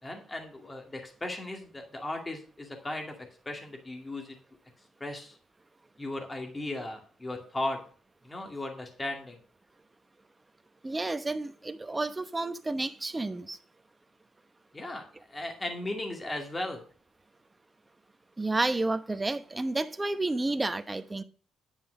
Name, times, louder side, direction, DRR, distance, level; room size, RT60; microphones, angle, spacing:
voice 1, 0.0-3.2 3.5-4.4 5.0-5.4 6.0-7.8 8.2-9.4 14.7-16.8, left 2 dB, 20° left, 2.2 m, -36 dB
voice 2, 10.8-13.6 18.4-21.2, right 2 dB, 20° right, 0.9 m, -31 dB
10.0 x 5.5 x 6.4 m
cardioid pair, 90°, 0 cm